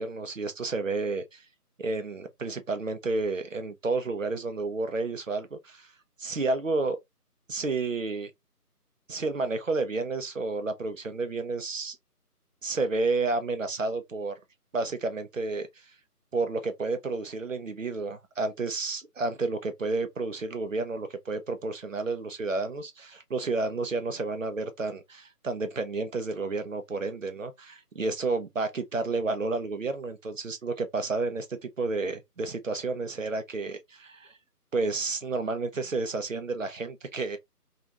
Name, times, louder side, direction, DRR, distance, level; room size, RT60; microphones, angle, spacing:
voice 1, 0.0-1.4 1.8-5.9 6.2-7.0 7.5-8.3 9.1-12.0 12.6-14.4 14.7-15.8 16.3-34.4 34.7-37.4, right 3 dB, 55° right, 0.7 m, -31 dB
2.5 x 2.5 x 2.8 m
figure-of-eight pair, 160°, 47 cm